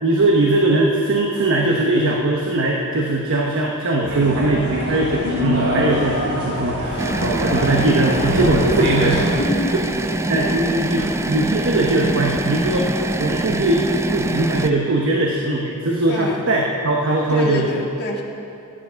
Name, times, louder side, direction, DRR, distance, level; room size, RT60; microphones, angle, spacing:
voice 1, 0.0-9.4 10.3-12.9 13.2-13.8 14.1-17.7, right 2 dB, 60° right, -1 dB, 1.1 m, -20 dB
sound 1, 4.0-9.4, equal, 85° right, 3.8 m, -23 dB
sound 2, 7.0-14.7, right 2 dB, 10° right, 0.3 m, -24 dB
voice 2, 9.3-9.8 10.4-11.2 16.1-16.4 17.3-18.2, left 1 dB, 50° left, -3 dB, 1.9 m, -27 dB
13.5 x 10.0 x 5.7 m, 2.7 s
head